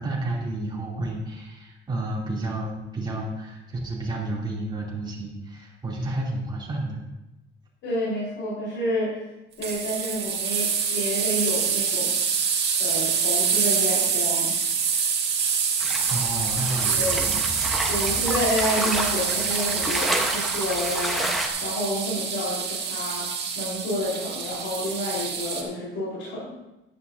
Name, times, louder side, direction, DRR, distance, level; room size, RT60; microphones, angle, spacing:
voice 1, 0.0-7.0 16.1-17.4 18.0-18.1, right 1 dB, 20° right, -4 dB, 3.0 m, -31 dB
voice 2, 7.8-9.2 9.6-12.1 12.8-14.6 16.8-17.4 17.8-26.5, left 1 dB, 70° left, -8 dB, 4.5 m, -29 dB
sound 1, 9.6-25.6, right 6 dB, 55° right, 1.9 m, -26 dB
sound 2, 15.8-21.5, right 1 dB, ahead, 1.1 m, -30 dB
14.0 x 11.0 x 2.8 m, 0.96 s
cardioid pair, 155°, 21 cm